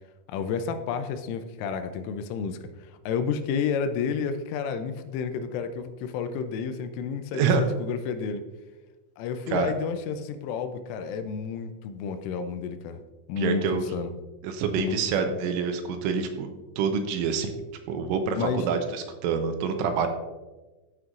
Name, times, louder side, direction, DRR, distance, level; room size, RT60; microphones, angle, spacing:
voice 1, 0.3-8.4 9.2-13.0 13.3-14.1 14.8-15.3 18.3-18.7, left 6 dB, 85° left, 9 dB, 3.1 m, -31 dB
voice 2, 13.4-13.8 14.4-16.5 16.8-17.5 17.9-20.1, right 6 dB, 85° right, 6 dB, 3.1 m, -26 dB
14.5 x 6.2 x 2.5 m, 1.2 s
omnidirectional pair, 5.8 m